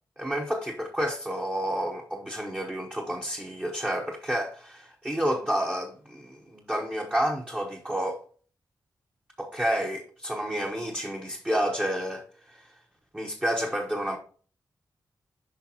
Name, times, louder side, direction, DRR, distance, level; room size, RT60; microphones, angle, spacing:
voice 1, 0.2-8.2 9.4-12.7 13.1-14.2, equal, 15° right, 0.8 m, -30 dB
6.8 x 5.2 x 2.8 m
wide cardioid pair, 100°, 7 cm